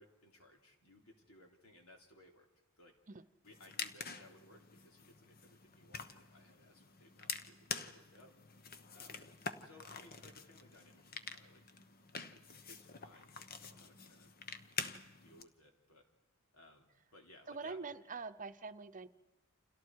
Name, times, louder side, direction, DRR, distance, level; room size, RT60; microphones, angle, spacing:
voice 1, 0.0-2.5 2.8-2.9 3.4-8.3 8.9-9.3 9.6-11.6 12.3-14.3 15.1-16.1 16.5-17.8, left 1 dB, 75° left, 2 dB, 3.3 m, -62 dB
sound 1, 3.4-15.4, left 5 dB, 45° left, 1.1 m, -47 dB
voice 2, 17.5-19.1, right 4 dB, 35° right, 10 dB, 0.8 m, -44 dB
29.5 x 27.5 x 4.8 m, 1.2 s
head